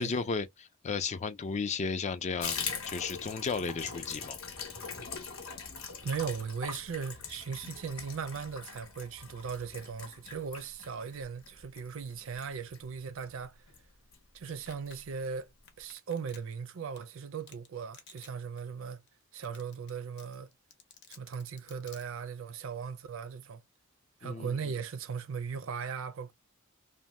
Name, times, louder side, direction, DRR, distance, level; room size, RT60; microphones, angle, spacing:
voice 1, 0.0-4.4 24.2-24.6, left 5 dB, 35° left, 0.3 m, -34 dB
Water tap faucet / Bathtub (filling or washing), 2.4-13.4 13.7-13.8 14.1-14.2 14.5-15.0 15.2-15.3 15.6-15.7, left 6 dB, 85° left, 0.9 m, -42 dB
voice 2, 6.0-13.7 14.3-15.5 15.8-19.0 19.3-20.5 21.1-23.6 24.2-26.3, right 6 dB, 65° right, 0.4 m, -38 dB
Domestic sounds home sounds, 14.7-15.0 15.7-16.6 17.0-17.1 17.5-17.7 17.9-18.3 18.6-18.7 19.1-19.2 19.4-19.9 20.2-22.0, left 7 dB, 55° left, 0.8 m, -52 dB
2.7 x 2.1 x 3.1 m
head